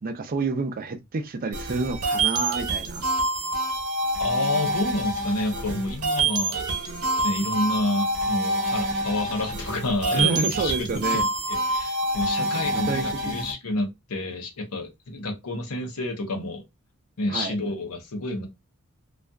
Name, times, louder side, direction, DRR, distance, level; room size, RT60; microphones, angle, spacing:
voice 1, 0.0-3.0 10.1-11.2 12.4-12.5 12.7-13.5 17.3-17.5, right 3 dB, 40° right, 0.4 m, -29 dB
sound 1, 1.5-13.5, right 2 dB, 75° right, 0.8 m, -27 dB
voice 2, 4.2-6.6 7.2-16.6 17.2-18.5, left 2 dB, 90° left, 0.8 m, -29 dB
2.6 x 2.4 x 2.2 m
head